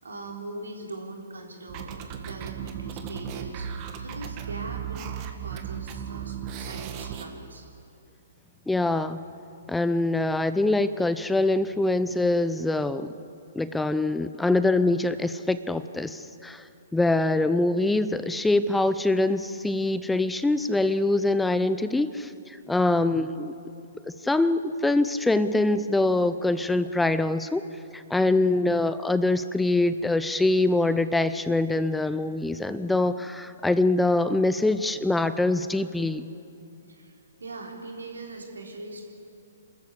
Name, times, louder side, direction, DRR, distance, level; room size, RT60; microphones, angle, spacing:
voice 1, 0.0-3.7 4.0-7.7 22.8-23.1 36.9-39.1, right 2 dB, 80° right, 1 dB, 3.9 m, -41 dB
sound 1, 1.7-7.2, right 8 dB, 35° right, 1.8 m, -36 dB
voice 2, 8.7-9.2 9.7-13.1 13.5-16.7 16.9-23.5 24.2-27.6 27.9-36.3, left 2 dB, 5° left, 13 dB, 0.6 m, -24 dB
28.0 x 14.0 x 8.3 m, 2.7 s
figure-of-eight pair, 125°, 0 cm